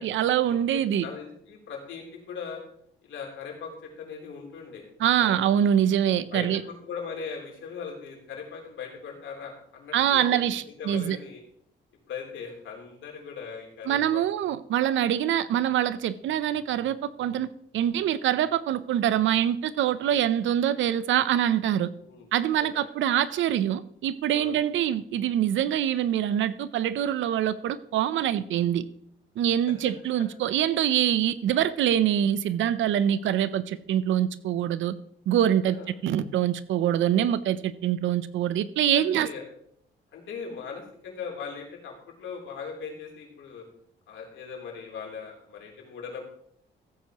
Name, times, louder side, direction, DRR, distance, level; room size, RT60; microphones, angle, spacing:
voice 1, 0.0-1.0 5.0-6.6 9.9-11.2 13.9-21.9 22.3-28.8 29.4-35.0 35.3-35.8 36.0-39.3, right 10 dB, 75° right, 0.7 m, -24 dB
voice 2, 0.7-2.6 3.0-4.9 5.2-5.4 6.3-10.4 10.8-11.4 12.1-14.2 17.2-17.4 21.9-22.3 22.6-22.8 24.3-24.6 35.6-35.9 38.9-39.4 40.1-41.9 42.2-43.6 44.1-46.2, left 6 dB, 75° left, 3.5 m, -39 dB
15.0 x 8.5 x 3.0 m
cardioid pair, 90°, 20 cm